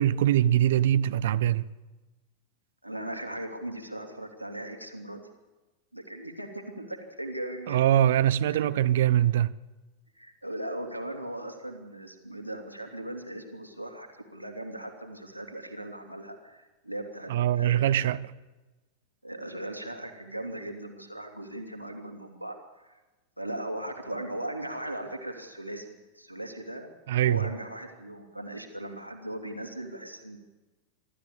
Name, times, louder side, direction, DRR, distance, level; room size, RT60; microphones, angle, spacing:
voice 1, 0.0-1.7 7.7-9.5 17.3-18.2 27.1-27.5, right 11 dB, 55° right, 0.7 m, -23 dB
voice 2, 2.8-5.3 5.9-7.9 8.5-8.7 10.2-18.2 19.2-23.0 23.4-30.4, right 1 dB, 90° left, 2.8 m, -38 dB
25.5 x 13.0 x 8.5 m
figure-of-eight pair, 90°, 0 cm